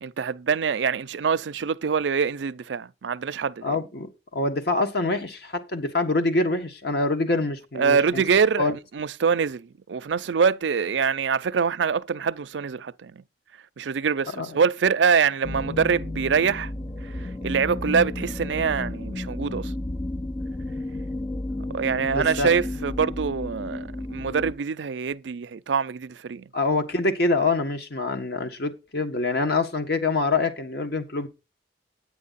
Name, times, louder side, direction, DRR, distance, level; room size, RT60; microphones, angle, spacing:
voice 1, 0.0-3.8 7.8-13.2 13.8-16.7 17.0-19.7 21.7-26.5, right 6 dB, 80° right, 0.5 m, -24 dB
voice 2, 3.6-8.2 8.6-8.7 14.4-14.6 22.1-22.5 26.5-31.3, left 3 dB, 60° left, 1.6 m, -25 dB
sound 1, 15.4-24.5, left 2 dB, 20° left, 0.4 m, -32 dB
9.3 x 9.2 x 4.1 m
head